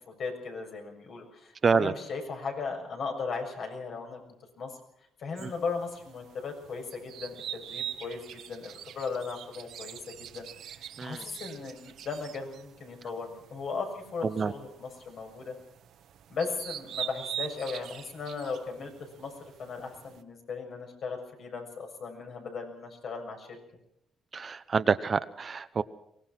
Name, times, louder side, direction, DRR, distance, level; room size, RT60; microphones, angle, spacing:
voice 1, 0.0-4.2 4.6-4.8 5.2-10.5 11.0-15.6 16.3-18.9 19.2-23.6, left 4 dB, 60° left, 2 dB, 6.9 m, -37 dB
voice 2, 1.6-1.9 11.0-11.2 14.3-14.5 24.3-25.8, right 5 dB, 40° right, 13 dB, 0.9 m, -27 dB
sound 1, 5.4-20.2, right 10 dB, 75° right, 1.3 m, -44 dB
23.5 x 19.0 x 6.1 m, 0.76 s
cardioid pair, 90°, 0 cm